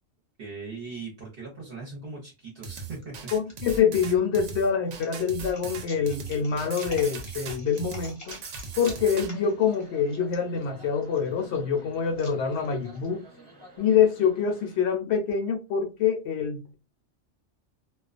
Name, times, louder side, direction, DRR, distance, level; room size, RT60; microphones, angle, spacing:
voice 1, 0.4-3.2, right 4 dB, 55° right, 0.9 m, -39 dB
sound 1, 2.6-9.3, right 5 dB, 80° right, 0.9 m, -39 dB
sound 2, 3.0-3.5 4.1-13.1, left 1 dB, 20° left, 0.6 m, -48 dB
voice 2, 3.3-8.3 8.8-13.2 13.8-16.7, left 7 dB, 70° left, 0.8 m, -25 dB
sound 3, 8.8-14.8, right 2 dB, 30° right, 0.8 m, -50 dB
2.3 x 2.2 x 2.4 m
omnidirectional pair, 1.3 m